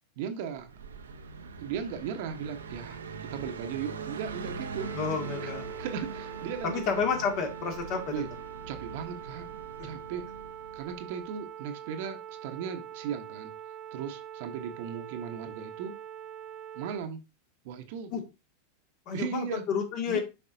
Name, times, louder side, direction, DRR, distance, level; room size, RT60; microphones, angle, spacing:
voice 1, 0.2-0.7 1.6-4.9 5.2-5.5 5.8-7.2 8.1-8.3 8.7-9.5 9.8-10.2 10.7-13.5 13.9-16.0 16.7-17.2 17.6-18.1 19.1-19.6 20.1-20.2, right 7 dB, 60° right, 8 dB, 1.0 m, -37 dB
Car passing by, 0.6-11.2, right 4 dB, 85° right, 0.7 m, -42 dB
sound 1, 4.8-17.0, right 10 dB, 35° right, 1.0 m, -43 dB
voice 2, 4.9-5.6 6.6-8.1 18.1-18.2 19.1-20.2, left 6 dB, 50° left, 3 dB, 2.1 m, -30 dB
6.7 x 5.3 x 2.7 m, 0.27 s
hypercardioid pair, 95°, 0 cm